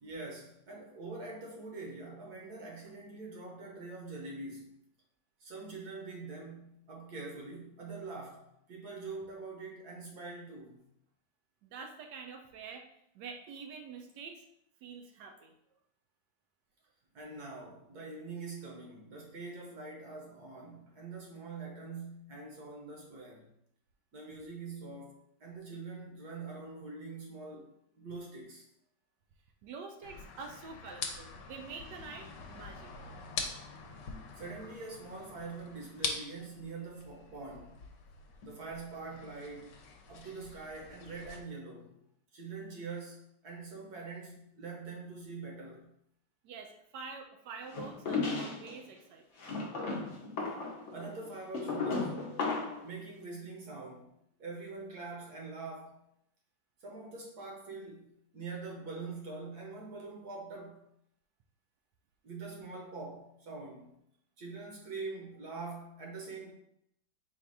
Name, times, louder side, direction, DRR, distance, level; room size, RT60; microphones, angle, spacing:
voice 1, 0.0-4.7 5.4-10.8 17.1-23.5 24.1-28.7 34.4-37.8 38.4-39.8 40.1-42.0 42.3-45.9 50.9-52.2 52.8-54.1 54.4-56.0 56.8-60.9 62.2-63.9 64.4-66.5, right 3 dB, 65° right, 1.4 m, -44 dB
voice 2, 11.6-12.9 13.1-14.4 14.8-15.5 29.6-33.1 46.4-49.2, right 5 dB, 80° right, 1.2 m, -46 dB
sound 1, 30.0-41.4, left 5 dB, 85° left, 1.3 m, -44 dB
sound 2, 47.7-48.7 49.4-52.9, left 3 dB, 55° left, 0.9 m, -35 dB
4.2 x 2.4 x 4.7 m
omnidirectional pair, 1.9 m